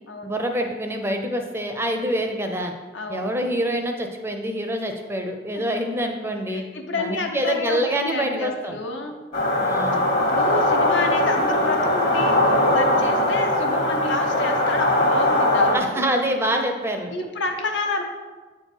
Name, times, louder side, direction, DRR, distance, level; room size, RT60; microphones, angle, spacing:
voice 1, 0.2-2.7 3.1-6.6 6.9-8.8 9.6-10.0 15.7-17.1, right 1 dB, 15° right, 4 dB, 0.5 m, -26 dB
voice 2, 2.9-3.3 6.5-9.2 10.2-12.4 12.7-16.0 17.1-18.0, left 3 dB, 70° left, 3 dB, 0.9 m, -29 dB
sound 1, 9.3-15.7, left 1 dB, 55° left, 1.6 m, -20 dB
8.4 x 4.4 x 4.9 m, 1.3 s
head